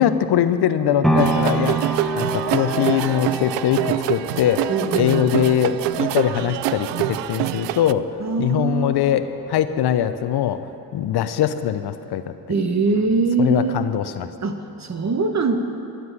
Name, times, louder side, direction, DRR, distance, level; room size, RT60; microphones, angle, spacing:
voice 1, 0.0-1.8 2.1-8.1 8.4-12.3 13.4-14.3, left 10 dB, 60° left, 11 dB, 0.8 m, -22 dB
sound 1, 1.0-9.1 9.6-9.7, right 1 dB, ahead, 1.3 m, -28 dB
sound 2, 1.2-7.9, right 16 dB, 70° right, 0.5 m, -26 dB
voice 2, 4.7-5.3 8.2-8.9 12.5-13.8 14.4-15.6, right 4 dB, 35° right, 6 dB, 1.4 m, -22 dB
12.0 x 7.9 x 9.8 m, 2.8 s
hypercardioid pair, 50°, 45 cm